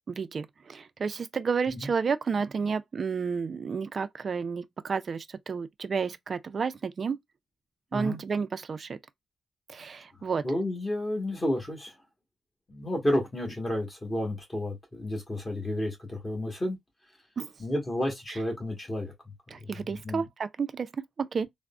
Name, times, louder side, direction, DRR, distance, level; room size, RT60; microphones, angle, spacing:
voice 1, 0.1-7.2 7.9-9.0 9.7-10.4 17.4-17.5 19.5-21.5, right 5 dB, 45° right, 0.3 m, -31 dB
voice 2, 10.2-11.9 12.7-16.8 17.6-19.1 19.6-20.2, left 1 dB, 20° left, 1.2 m, -31 dB
3.5 x 2.0 x 2.3 m
cardioid pair, 125°, 0 cm